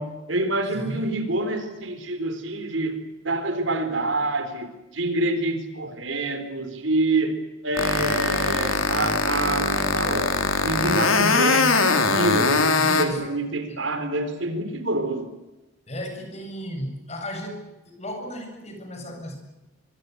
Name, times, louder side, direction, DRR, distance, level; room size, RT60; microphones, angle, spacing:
voice 1, 0.0-3.0 3.2-7.4 7.6-10.4 10.6-15.3, right 2 dB, 65° right, 4.1 m, -27 dB
voice 2, 0.7-1.1 12.8-13.2 13.7-13.8 15.9-19.4, equal, 35° left, 7.2 m, -34 dB
sound 1, 7.8-13.0, left 4 dB, 85° left, 3.7 m, -21 dB
24.5 x 24.5 x 8.0 m
head